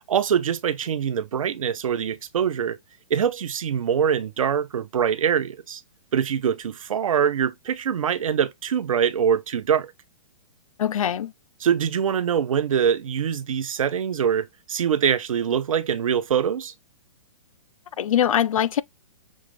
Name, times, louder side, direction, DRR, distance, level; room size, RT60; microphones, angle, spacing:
voice 1, 0.1-2.8 3.1-5.8 6.1-9.9 11.6-16.7, right 8 dB, 80° right, 0.8 m, -24 dB
voice 2, 10.8-11.3 18.0-18.8, left 10 dB, 90° left, 0.4 m, -22 dB
6.4 x 2.4 x 3.1 m
hypercardioid pair, 155°, 17 cm